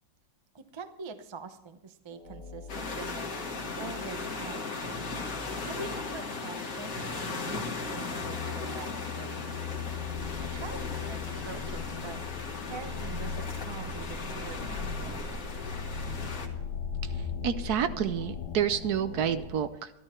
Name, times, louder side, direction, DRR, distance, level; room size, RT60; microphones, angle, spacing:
voice 1, 0.5-4.7 5.6-9.5 10.1-12.2 12.7-15.2, right 4 dB, 30° right, 8 dB, 0.4 m, -44 dB
sound 1, 2.1-19.5, left 5 dB, 65° left, 1.7 m, -39 dB
sound 2, 2.7-16.5, left 3 dB, 50° left, 2.0 m, -37 dB
voice 2, 17.0-19.9, right 9 dB, 65° right, 11 dB, 1.1 m, -29 dB
13.5 x 13.0 x 4.4 m, 0.90 s
omnidirectional pair, 1.9 m